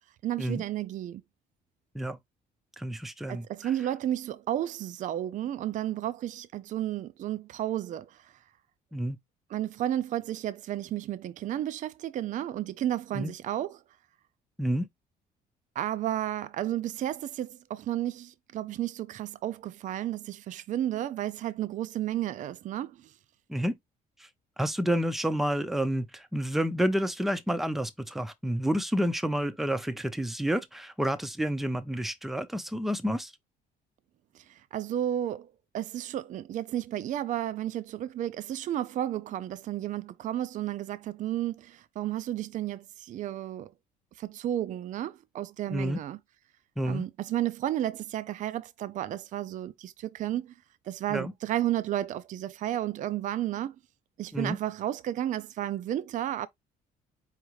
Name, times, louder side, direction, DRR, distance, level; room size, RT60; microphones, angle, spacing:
voice 1, 0.2-1.2 3.3-8.3 9.5-13.8 15.8-23.1 34.3-35.5 35.7-43.7 44.2-46.2 46.9-50.5 50.9-53.8 54.2-56.5, right 12 dB, 50° right, 0.4 m, -32 dB
voice 2, 2.8-3.7 8.9-9.2 13.1-13.3 14.6-14.9 23.5-23.8 24.6-33.3 45.7-46.0 46.8-47.0 51.1-51.3 54.3-54.6, equal, ahead, 0.5 m, -29 dB
5.0 x 2.6 x 3.0 m
cardioid pair, 110°, 17 cm